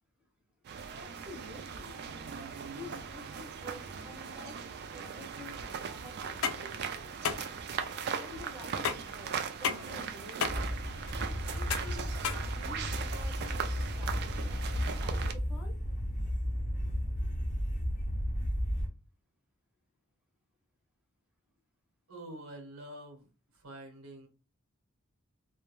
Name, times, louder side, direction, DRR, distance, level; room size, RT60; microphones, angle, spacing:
sound 1, 0.6-15.3, right 6 dB, 50° right, 0.3 m, -39 dB
voice 1, 1.0-2.0 2.6-7.0 7.3-7.5 8.2-10.7 11.4-12.1 12.4-15.8, left 2 dB, 5° right, 1 dB, 0.6 m, -50 dB
sound 2, 6.2-13.1, left 6 dB, 90° left, 0.4 m, -36 dB
sound 3, 10.5-18.9, equal, 35° left, 0.7 m, -34 dB
voice 2, 22.1-23.3 23.5-24.3, right 1 dB, 80° right, 1 dB, 0.9 m, -46 dB
2.3 x 2.1 x 3.1 m, 0.33 s
head